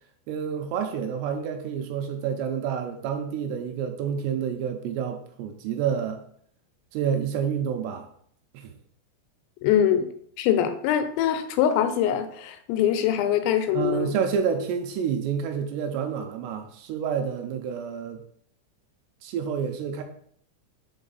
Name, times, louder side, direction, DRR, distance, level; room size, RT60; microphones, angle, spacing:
voice 1, 0.3-6.2 6.9-8.1 8.5-8.8 13.7-18.2 19.2-20.0, right 7 dB, 85° right, 5 dB, 2.6 m, -29 dB
voice 2, 9.6-10.1 10.4-14.1, left 10 dB, 85° left, 9 dB, 2.9 m, -23 dB
5.3 x 5.0 x 4.0 m, 0.64 s
omnidirectional pair, 5.1 m